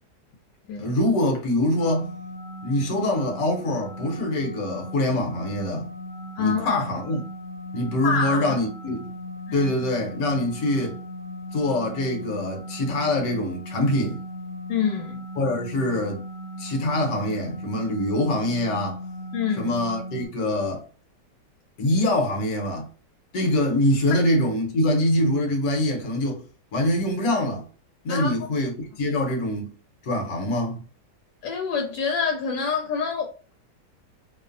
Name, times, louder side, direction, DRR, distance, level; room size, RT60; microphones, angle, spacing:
voice 1, 0.8-2.1 2.6-5.9 6.4-7.2 7.7-9.1 9.5-11.0 11.5-14.2 15.4-16.2 16.6-19.0 19.6-20.8 21.8-22.9 23.3-26.4 26.7-27.6 28.0-29.7 30.0-30.8, left 1 dB, 60° left, 1.2 m, -24 dB
sound 1, 1.8-20.3, equal, 80° right, 0.4 m, -37 dB
voice 2, 6.4-6.8 8.0-8.6 9.5-9.7 14.7-15.2 19.3-19.8 28.1-28.3 29.2-29.3 31.4-33.5, left 6 dB, 90° left, 1.2 m, -27 dB
2.9 x 2.0 x 2.5 m
omnidirectional pair, 1.8 m